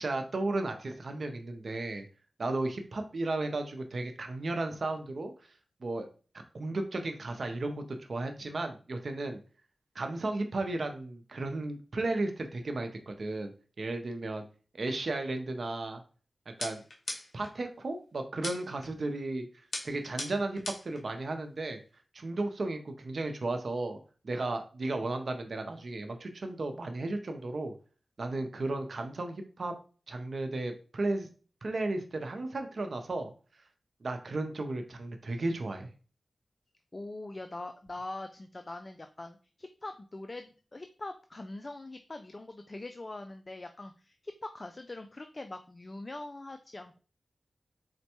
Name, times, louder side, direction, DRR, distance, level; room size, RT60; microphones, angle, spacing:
voice 1, 0.0-2.1 2.4-5.3 5.8-6.1 6.5-7.8 8.1-9.4 9.9-13.5 13.8-14.4 14.7-16.0 16.6-16.8 17.3-19.5 19.8-21.8 22.1-24.0 24.2-27.7 28.2-29.8 30.1-31.3 31.6-33.3 34.0-35.9, right 2 dB, 65° right, 6 dB, 0.5 m, -34 dB
sound 1, 16.6-17.5 18.4-18.9 19.7-21.0, left 2 dB, 60° left, 1.0 m, -39 dB
voice 2, 36.9-47.0, left 2 dB, 40° left, 7 dB, 0.3 m, -43 dB
4.2 x 2.1 x 2.9 m, 0.37 s
cardioid pair, 50°, 0 cm